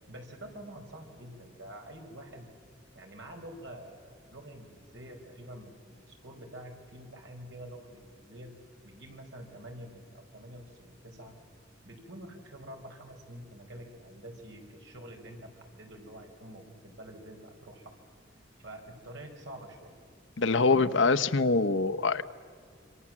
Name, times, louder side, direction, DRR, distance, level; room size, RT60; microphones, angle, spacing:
voice 1, 0.1-2.5 2.9-8.5 8.8-11.4 11.8-17.9 18.6-19.9 20.5-21.2, right 1 dB, 75° right, 3 dB, 4.7 m, -47 dB
voice 2, 20.4-22.2, left 4 dB, 80° left, 12 dB, 0.9 m, -24 dB
27.0 x 26.0 x 7.5 m, 2.2 s
head